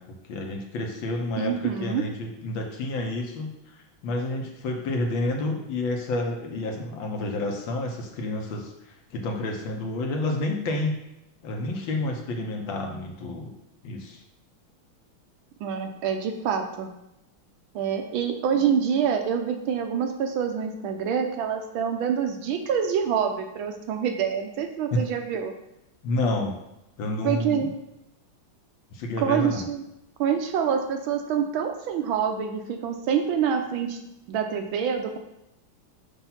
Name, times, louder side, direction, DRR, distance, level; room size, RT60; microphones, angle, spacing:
voice 1, 0.0-11.0 11.4-13.5 13.8-14.2 24.9-25.1 26.0-26.6 27.0-27.7 28.9-29.6, left 2 dB, 70° left, 2 dB, 1.6 m, -29 dB
voice 2, 1.4-2.0 15.6-16.9 17.7-25.5 27.2-27.7 29.2-29.8 30.2-34.0 34.3-35.2, right 7 dB, 75° right, 5 dB, 1.4 m, -26 dB
6.8 x 2.7 x 5.7 m, 0.86 s
omnidirectional pair, 2.3 m